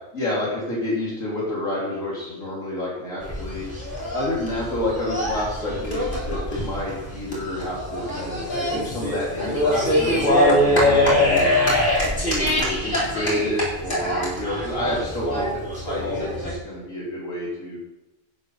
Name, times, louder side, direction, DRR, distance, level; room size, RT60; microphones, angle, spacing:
voice 1, 0.1-3.7 4.1-10.3 10.6-11.5 12.5-17.8, left 1 dB, 85° left, -5 dB, 4.0 m, -29 dB
sound 1, 3.2-16.6, left 1 dB, 40° left, 3.8 m, -23 dB
12.0 x 8.4 x 5.6 m, 0.98 s
omnidirectional pair, 1.3 m